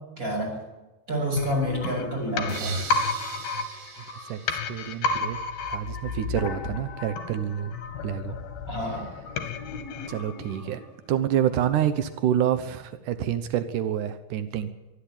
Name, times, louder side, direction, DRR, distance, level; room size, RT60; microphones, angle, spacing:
voice 1, 0.2-0.6 1.1-2.8 8.7-9.1, equal, 15° right, 2 dB, 7.4 m, -28 dB
sound 1, 1.4-11.1 11.4-11.5, left 4 dB, 60° left, 3.9 m, -32 dB
sound 2, 2.5-5.5, right 6 dB, 70° right, 4.0 m, -41 dB
voice 2, 4.2-5.4 5.7-7.7 8.0-8.4 10.1-10.8 11.1-14.7, right 10 dB, 85° right, 11 dB, 1.8 m, -27 dB
24.0 x 13.5 x 9.0 m, 1.1 s
omnidirectional pair, 5.4 m